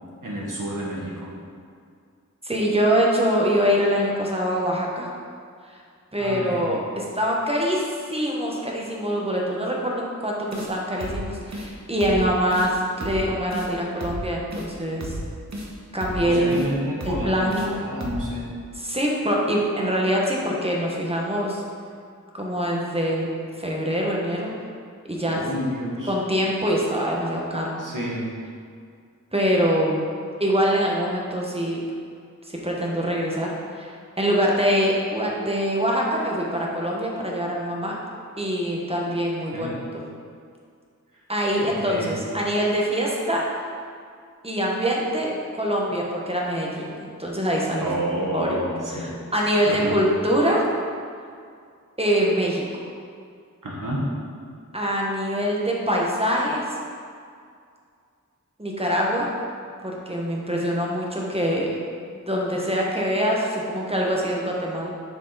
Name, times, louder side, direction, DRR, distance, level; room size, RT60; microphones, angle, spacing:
voice 1, 0.2-1.3 6.2-6.6 16.2-18.5 25.2-26.1 27.8-28.3 39.5-39.7 41.6-42.1 47.8-49.0 49.6-49.9 53.6-54.0, equal, 90° right, -4 dB, 1.5 m, -29 dB
voice 2, 2.4-5.1 5.7-5.8 6.1-15.2 15.9-16.6 17.0-17.8 18.7-21.6 22.3-23.3 23.6-24.5 25.1-25.4 26.1-27.7 29.3-30.1 30.4-31.8 32.4-38.0 38.4-40.0 41.3-43.6 44.4-47.9 48.3-48.6 48.9-50.6 52.0-52.6 54.7-56.6 58.6-59.3 59.8-61.8 62.3-64.9, equal, 20° right, -3 dB, 1.2 m, -24 dB
sound 1, 10.5-10.7 11.0-11.2 11.5-11.7 12.0-12.2 12.5-12.7 13.0-13.2 13.5-13.7 14.0-14.2 14.5-14.7 15.0-15.2 15.5-15.7 16.0-16.2 16.5-16.7 17.0-17.2 17.5-17.7 18.0-18.2, right 1 dB, 60° right, 1.1 m, -32 dB
7.2 x 4.7 x 4.0 m, 2.3 s
wide cardioid pair, 55°, 31 cm